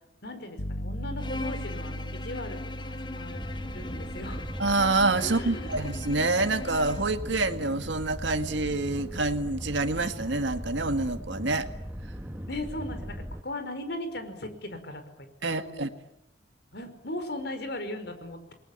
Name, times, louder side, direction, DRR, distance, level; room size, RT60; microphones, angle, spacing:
voice 1, 0.2-3.4 3.7-4.5 5.2-5.8 12.5-15.0 15.4-15.9 16.7-18.5, left 1 dB, 60° left, 8 dB, 5.1 m, -38 dB
sound 1, 0.6-11.1, equal, 80° left, 1.4 m, -41 dB
Bowed string instrument, 1.2-7.2, left 2 dB, 25° left, 1.6 m, -40 dB
sound 2, 3.3-13.4, equal, 10° right, 1.2 m, -38 dB
voice 2, 4.6-11.7 15.4-15.9, right 2 dB, 70° right, 9 dB, 1.9 m, -27 dB
29.5 x 22.0 x 8.8 m, 0.79 s
head